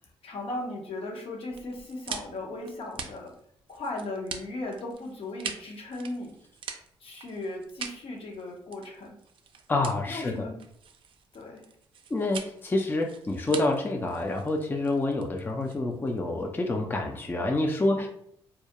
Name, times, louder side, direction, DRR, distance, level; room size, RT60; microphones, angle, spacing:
voice 1, 0.2-3.3 3.7-6.3 7.0-9.2 10.1-10.5 11.3-11.6 17.9-18.1, left 2 dB, 65° left, 1 dB, 0.7 m, -37 dB
sound 1, 1.5-16.2, right 6 dB, 55° right, 0.3 m, -43 dB
voice 2, 9.7-10.5 12.1-18.1, left 2 dB, 20° left, 2 dB, 0.4 m, -28 dB
2.3 x 2.1 x 2.8 m, 0.68 s
supercardioid pair, 65°, 10 cm